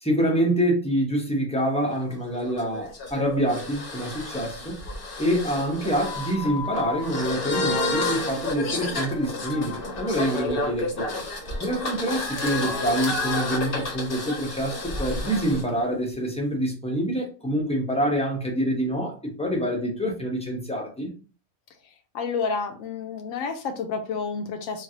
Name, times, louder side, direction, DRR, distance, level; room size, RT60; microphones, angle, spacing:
voice 1, 0.0-4.8 5.2-11.0 11.6-21.1, equal, 10° left, 0.4 m, -26 dB
sound 1, 1.9-15.6, left 2 dB, 50° left, 0.8 m, -30 dB
voice 2, 22.1-24.8, left 5 dB, 75° left, 0.9 m, -30 dB
3.2 x 2.3 x 2.7 m
omnidirectional pair, 1.5 m